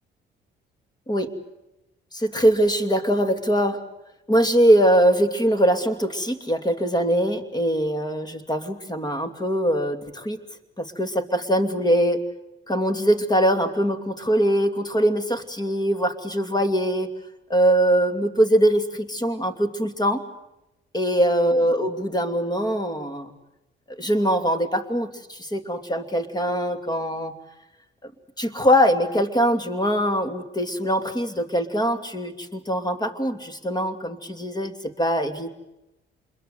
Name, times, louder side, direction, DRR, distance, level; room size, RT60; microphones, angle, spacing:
voice 1, 2.1-3.8 4.3-10.4 10.8-12.2 12.7-17.1 17.5-20.2 20.9-23.3 23.9-27.3 28.0-28.1 28.4-35.5, equal, 20° left, 9 dB, 2.8 m, -22 dB
27.0 x 22.0 x 8.0 m, 0.91 s
cardioid pair, 90°, 20 cm